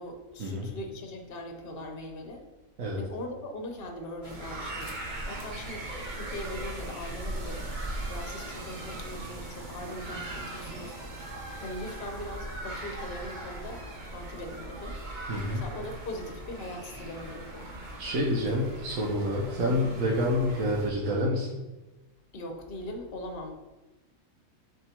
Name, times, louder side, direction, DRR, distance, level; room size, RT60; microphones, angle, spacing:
voice 1, 0.0-2.4 2.9-5.0 5.2-11.0 11.6-15.0 15.5-17.7 22.3-23.5, left 1 dB, 45° left, 3 dB, 1.2 m, -40 dB
sound 1, 4.2-20.9, right 1 dB, 35° right, 1.2 m, -39 dB
voice 2, 15.3-15.6 18.0-21.5, equal, 75° right, -4 dB, 1.5 m, -28 dB
7.7 x 3.9 x 4.5 m, 1.1 s
omnidirectional pair, 1.5 m